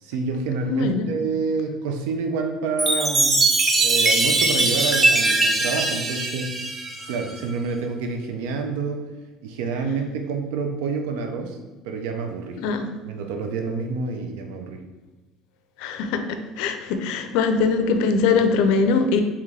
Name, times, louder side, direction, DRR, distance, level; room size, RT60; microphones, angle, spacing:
voice 1, 0.0-6.6 7.1-9.0 9.4-11.6 11.8-12.6 13.0-14.8, right 4 dB, 90° right, 4 dB, 0.4 m, -28 dB
voice 2, 0.7-1.1 12.6-12.9 15.8-19.2, left 4 dB, 80° left, 7 dB, 0.4 m, -22 dB
Chime, 2.8-7.4, right 2 dB, 20° right, 0.5 m, -21 dB
3.6 x 3.0 x 3.3 m, 1.2 s
cardioid pair, 110°, 0 cm